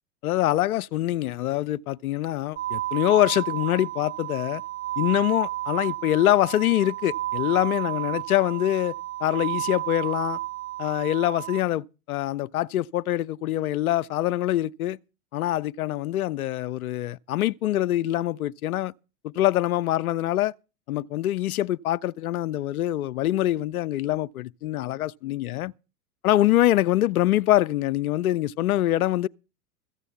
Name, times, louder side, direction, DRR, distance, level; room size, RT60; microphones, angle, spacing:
voice 1, 0.2-4.6 5.0-8.9 9.2-10.4 10.8-15.0 15.3-18.9 19.2-20.5 20.9-25.7 26.2-29.3, left 14 dB, 70° left, 0.6 m, -24 dB
sound 1, 2.6-11.6, right 15 dB, 20° right, 1.1 m, -32 dB
14.5 x 8.1 x 5.7 m
figure-of-eight pair, 95°, 45 cm